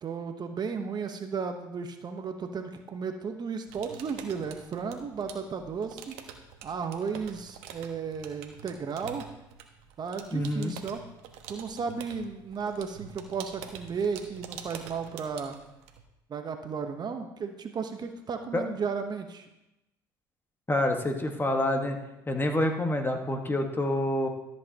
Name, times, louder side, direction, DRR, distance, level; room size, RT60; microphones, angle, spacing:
voice 1, 0.0-6.1 6.6-9.2 10.0-11.0 11.5-15.6 16.3-19.5, right 5 dB, 40° right, 6 dB, 1.0 m, -34 dB
sound 1, 3.7-16.0, right 8 dB, 70° right, 1.2 m, -47 dB
voice 2, 10.3-10.7 18.5-18.7 20.7-22.0 22.3-24.3, left 1 dB, 20° left, 4 dB, 1.5 m, -27 dB
13.5 x 7.6 x 2.9 m, 0.93 s
hypercardioid pair, 75°, 11 cm